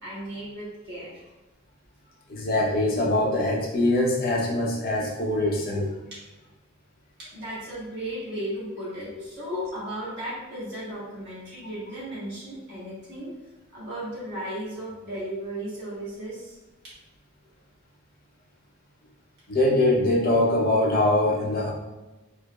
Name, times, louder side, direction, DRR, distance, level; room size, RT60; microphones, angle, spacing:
voice 1, 0.0-1.2 7.3-13.3 13.7-16.6, right 1 dB, 55° right, -8 dB, 1.5 m, -35 dB
voice 2, 2.3-6.0 9.5-9.7 19.5-21.7, left 1 dB, 45° left, -2 dB, 0.7 m, -23 dB
4.6 x 2.0 x 2.3 m, 1.1 s
head